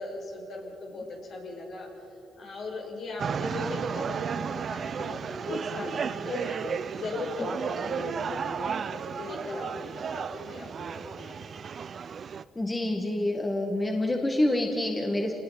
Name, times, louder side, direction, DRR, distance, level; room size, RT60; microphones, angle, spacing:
voice 1, 0.0-1.9 2.4-11.3, left 3 dB, 65° left, -1 dB, 6.1 m, -38 dB
sound 1, 3.2-12.4, right 6 dB, 50° right, 0.6 m, -33 dB
voice 2, 12.6-15.3, left 1 dB, 20° left, 2 dB, 1.9 m, -27 dB
28.0 x 19.5 x 6.0 m, 2.8 s
cardioid pair, 90°, 0 cm